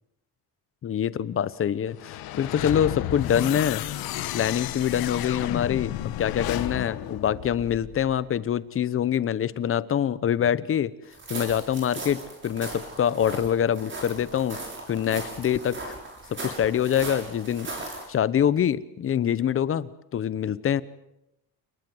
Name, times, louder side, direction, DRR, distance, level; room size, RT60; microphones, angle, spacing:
voice 1, 0.8-3.8 4.3-10.9 11.3-14.6 14.9-15.9 16.3-20.8, left 9 dB, 35° left, 17 dB, 0.9 m, -25 dB
sound 1, 1.9-8.2, left 13 dB, 75° left, 1.6 m, -32 dB
sound 2, 11.1-18.1, right 2 dB, 30° right, 6.6 m, -38 dB
28.5 x 20.0 x 7.9 m, 0.88 s
cardioid pair, 150°, 37 cm